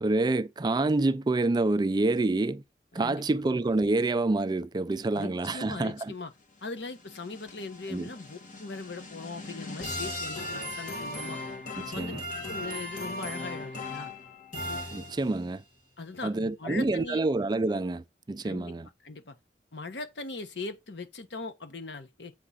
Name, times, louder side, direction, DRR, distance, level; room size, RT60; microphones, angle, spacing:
voice 1, 0.0-2.6 2.9-6.1 7.9-8.1 11.8-12.2 14.9-15.6 16.2-18.9, right 2 dB, 25° right, 0.4 m, -27 dB
voice 2, 5.1-6.3 6.6-11.4 11.9-12.1 12.5-14.1 16.0-17.2 18.4-18.7 19.0-19.3 19.7-22.3, left 3 dB, 70° left, 1.1 m, -40 dB
sound 1, 6.6-15.6, left 1 dB, 45° left, 2.0 m, -38 dB
7.7 x 3.6 x 5.6 m
head